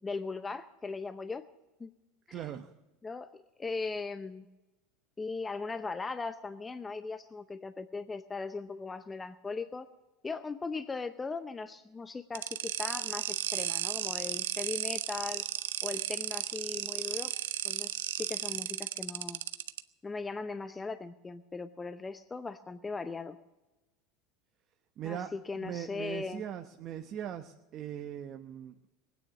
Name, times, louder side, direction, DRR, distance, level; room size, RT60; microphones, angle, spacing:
voice 1, 0.0-1.4 1.8-1.9 2.3-2.5 3.0-4.5 5.2-9.9 10.2-15.4 15.8-17.3 17.6-19.4 20.0-23.4 25.0-26.4, left 4 dB, 20° left, 11 dB, 0.7 m, -39 dB
voice 2, 2.3-2.7 25.0-28.9, right 10 dB, 45° right, 6 dB, 0.9 m, -40 dB
sound 1, 12.4-19.8, right 12 dB, 80° right, 0.5 m, -34 dB
19.5 x 9.4 x 7.2 m, 1.0 s
hypercardioid pair, 90°, 0 cm